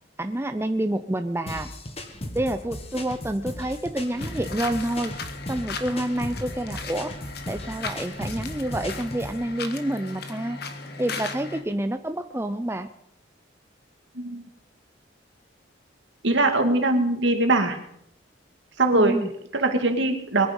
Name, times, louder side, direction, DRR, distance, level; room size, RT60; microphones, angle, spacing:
voice 1, 0.2-1.7 2.3-5.1 5.5-7.1 7.5-10.6 11.0-12.9 18.9-19.3, right 1 dB, 10° right, 8 dB, 0.5 m, -28 dB
sound 1, 1.5-9.4, left 1 dB, 30° left, 1.6 m, -36 dB
sound 2, 4.2-11.6, left 4 dB, 55° left, 1.6 m, -37 dB
voice 2, 16.2-17.8 18.8-19.2 19.5-20.5, right 2 dB, 70° right, 5 dB, 2.3 m, -21 dB
22.0 x 10.0 x 5.4 m, 0.73 s
head